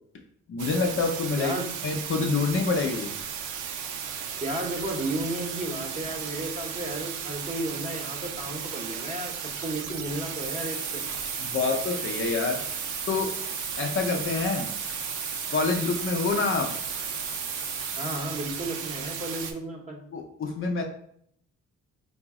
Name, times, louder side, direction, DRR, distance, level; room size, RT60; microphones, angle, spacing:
voice 1, 0.5-1.5 1.8-3.1 11.4-12.6 13.1-13.3 13.8-14.7 15.5-16.8 20.1-20.8, left 4 dB, 45° left, 2 dB, 0.6 m, -27 dB
sound 1, 0.6-19.5, right 7 dB, 85° right, 0.5 m, -35 dB
voice 2, 1.4-1.7 4.4-9.3 9.6-11.0 18.0-20.0, right 1 dB, 25° right, 0 dB, 0.9 m, -33 dB
sound 2, 10.4-18.2, right 4 dB, 50° right, 0.8 m, -36 dB
3.8 x 2.0 x 3.6 m, 0.68 s
cardioid pair, 90°, 30 cm